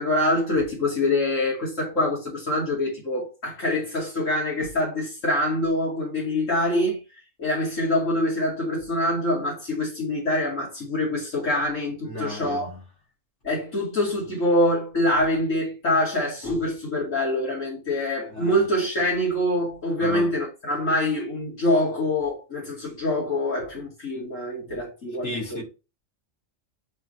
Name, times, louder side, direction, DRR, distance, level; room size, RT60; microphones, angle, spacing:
voice 1, 0.0-7.0 7.4-12.7 13.4-25.6, left 1 dB, 80° left, 2.8 m, -25 dB
voice 2, 12.0-12.8 18.3-18.6 20.0-20.3 25.2-25.6, left 2 dB, 65° left, 3.2 m, -34 dB
8.9 x 3.8 x 3.2 m
omnidirectional pair, 1.3 m